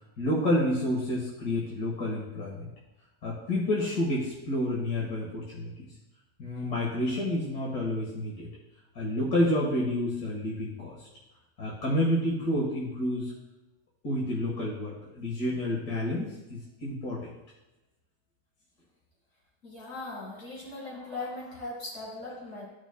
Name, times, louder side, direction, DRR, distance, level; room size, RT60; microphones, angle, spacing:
voice 1, 0.2-2.7 3.2-5.9 6.4-8.5 9.0-11.1 11.6-13.3 14.0-17.3, left 1 dB, 85° left, -5 dB, 2.0 m, -29 dB
voice 2, 19.6-22.7, left 2 dB, 60° left, -6 dB, 3.2 m, -39 dB
13.5 x 6.0 x 2.2 m, 1.0 s
omnidirectional pair, 1.6 m